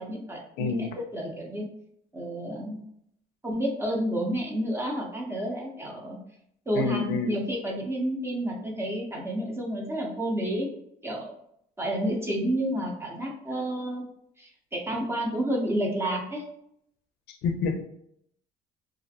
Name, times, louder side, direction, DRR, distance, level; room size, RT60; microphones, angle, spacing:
voice 1, 0.0-1.7 2.1-2.8 3.4-6.2 6.7-10.7 11.0-11.3 11.8-14.0 14.4-16.4, right 1 dB, 15° right, -1 dB, 0.7 m, -30 dB
voice 2, 0.6-0.9 6.7-7.4 17.4-17.8, left 4 dB, 80° left, 6 dB, 0.4 m, -27 dB
2.5 x 2.1 x 2.7 m, 0.72 s
cardioid pair, 110°, 17 cm